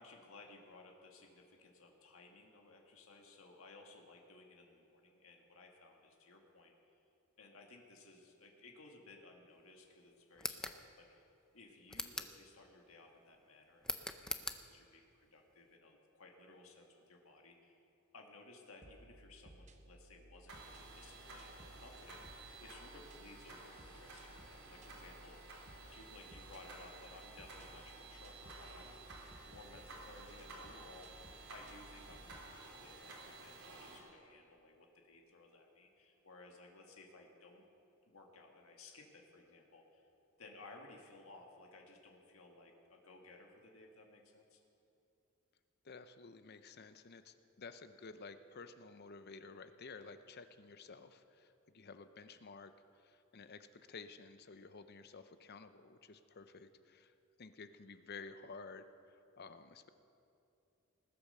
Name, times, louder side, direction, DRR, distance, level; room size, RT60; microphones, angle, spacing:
voice 1, 0.0-6.7 7.4-11.2 11.5-17.8 18.1-25.5 25.9-29.0 29.4-31.2 31.5-37.6 38.1-40.1 40.4-44.6, left 2 dB, 75° left, 1 dB, 1.7 m, -58 dB
sound 1, 10.4-10.8 11.9-12.4 13.8-14.6, left 1 dB, 5° left, 0.6 m, -41 dB
sound 2, 18.8-32.5, right 1 dB, 35° right, 0.8 m, -59 dB
sound 3, 20.5-34.0, right 3 dB, 85° right, 3.5 m, -54 dB
voice 2, 45.8-59.9, left 4 dB, 50° left, 10 dB, 0.7 m, -53 dB
20.0 x 8.7 x 6.7 m, 2.8 s
head